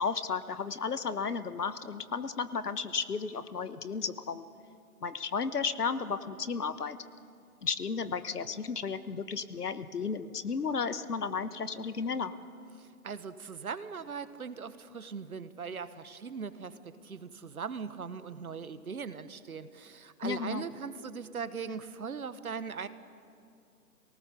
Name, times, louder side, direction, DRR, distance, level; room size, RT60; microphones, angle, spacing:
voice 1, 0.0-4.5 5.0-7.0 7.6-12.3 20.2-20.6, left 5 dB, 80° left, 13 dB, 1.3 m, -33 dB
voice 2, 12.8-22.9, right 6 dB, 65° right, 13 dB, 1.2 m, -40 dB
24.5 x 18.5 x 6.9 m, 2.4 s
figure-of-eight pair, 160°, 46 cm